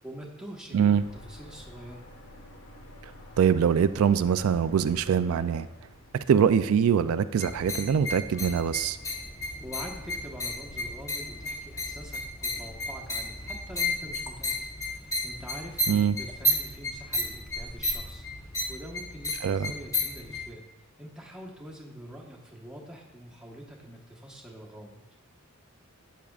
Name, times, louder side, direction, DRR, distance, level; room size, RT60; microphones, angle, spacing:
voice 1, 0.0-2.0 9.6-20.6 21.0-25.0, equal, 5° right, -2 dB, 1.2 m, -45 dB
sound 1, 0.9-6.1, left 1 dB, 75° left, 1.3 m, -49 dB
voice 2, 3.4-5.7 6.1-9.0 15.9-16.2 19.4-19.7, right 7 dB, 75° right, 12 dB, 0.3 m, -23 dB
sound 2, 7.4-20.4, left 1 dB, 15° left, 0.9 m, -33 dB
12.0 x 8.2 x 2.4 m, 1.1 s
head